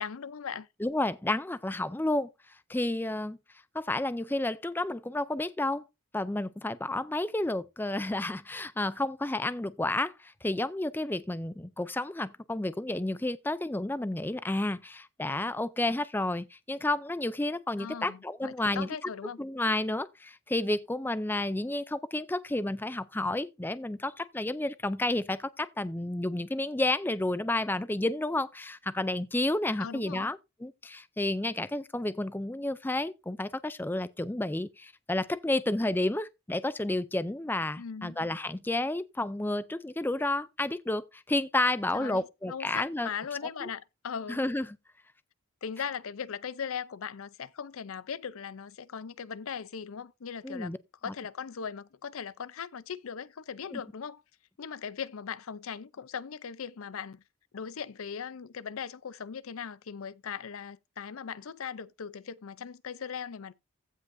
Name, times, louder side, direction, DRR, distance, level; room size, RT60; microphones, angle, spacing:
voice 1, 0.0-0.7 17.8-19.4 29.8-30.3 37.8-38.2 41.9-44.4 45.6-50.7 51.0-54.2 54.6-57.2 57.5-63.5, left 7 dB, 75° left, 0.5 m, -39 dB
voice 2, 0.8-2.3 2.7-3.4 3.7-5.8 6.1-18.9 19.4-43.1 43.6-43.7 44.3-44.7 50.4-50.8 51.1-51.2 53.7-53.8, left 2 dB, 10° left, 0.4 m, -31 dB
16.0 x 5.3 x 2.6 m
head